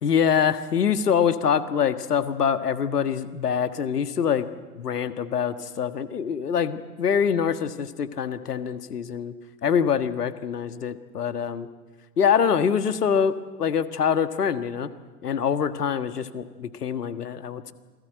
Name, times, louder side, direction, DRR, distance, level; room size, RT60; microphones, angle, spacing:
voice 1, 0.0-4.5 4.7-9.3 9.6-11.7 12.2-14.9 15.2-17.7, left 7 dB, 70° left, 11 dB, 1.6 m, -24 dB
27.5 x 19.5 x 8.8 m, 1.4 s
figure-of-eight pair, 105°, 49 cm